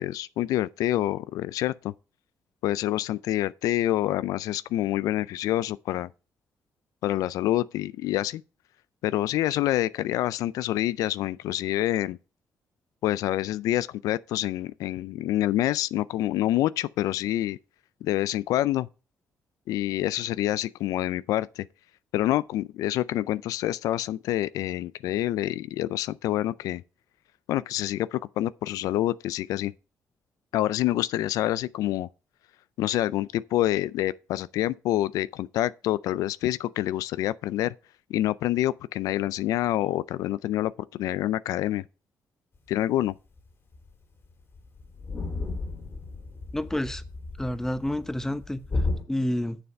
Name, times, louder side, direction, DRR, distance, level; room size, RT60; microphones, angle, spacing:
voice 1, 0.0-1.9 2.6-6.1 7.0-8.4 9.0-12.2 13.0-17.6 18.0-18.9 19.7-21.6 22.1-26.8 27.5-29.7 30.5-32.1 32.8-37.7 38.1-41.8 42.7-43.2, left 14 dB, 85° left, 0.3 m, -27 dB
sound 1, 43.4-43.5 43.7-43.9 44.2-44.3 44.5-49.0, left 3 dB, 45° left, 2.3 m, -33 dB
voice 2, 46.5-47.0 47.4-48.6 49.1-49.6, left 1 dB, 10° left, 0.9 m, -29 dB
7.0 x 6.8 x 5.2 m
cardioid pair, 80°, 6 cm